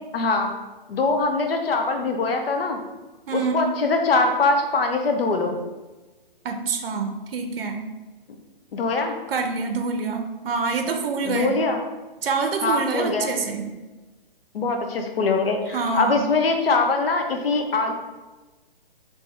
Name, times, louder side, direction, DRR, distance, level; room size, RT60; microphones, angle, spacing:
voice 1, 0.1-0.5 0.9-2.8 3.3-5.5 8.7-9.2 11.2-11.8 12.6-13.3 14.5-17.9, left 3 dB, 75° left, 4 dB, 0.6 m, -22 dB
voice 2, 3.3-3.6 6.4-7.8 9.3-11.5 12.2-13.6 15.7-16.2, right 4 dB, 75° right, 5 dB, 0.6 m, -26 dB
3.4 x 2.7 x 3.2 m, 1.2 s
hypercardioid pair, 170°, 29 cm